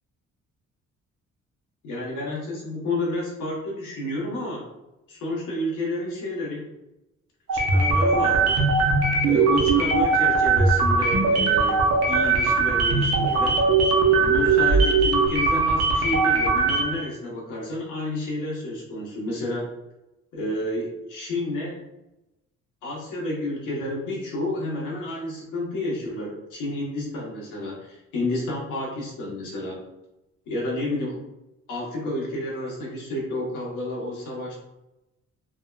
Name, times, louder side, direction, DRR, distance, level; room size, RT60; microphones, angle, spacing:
voice 1, 1.8-4.7 5.1-6.7 7.5-8.7 9.2-13.6 14.2-19.7 20.3-21.8 22.8-29.8 30.5-31.2 31.7-34.6, left 1 dB, 80° left, -2 dB, 1.0 m, -30 dB
sound 1, 7.5-17.0, right 4 dB, 55° right, 0.6 m, -20 dB
3.5 x 2.1 x 2.2 m, 0.93 s
cardioid pair, 90°, 30 cm